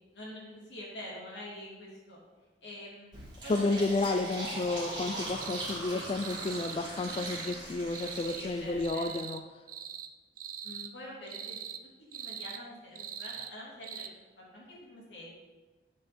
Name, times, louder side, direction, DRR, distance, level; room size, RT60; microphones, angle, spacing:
voice 1, 0.1-2.2 2.6-3.9 4.3-4.4 5.9-6.2 8.3-9.2 10.6-11.7 12.0-14.1 14.4-15.3, left 1 dB, 80° left, -5 dB, 2.9 m, -46 dB
Fill (with liquid), 3.1-8.8, right 1 dB, 25° right, 2.8 m, -40 dB
voice 2, 3.5-9.4, left 2 dB, 30° left, 7 dB, 0.3 m, -31 dB
sound 1, 5.4-5.8 6.2-6.8 7.1-7.6 7.9-8.4 8.8-9.4 9.7-10.1 10.4-10.9 11.3-11.8 12.1-12.6 13.0-13.5 13.8-14.1, right 8 dB, 50° right, 0.5 m, -42 dB
8.4 x 6.3 x 4.3 m, 1.3 s
head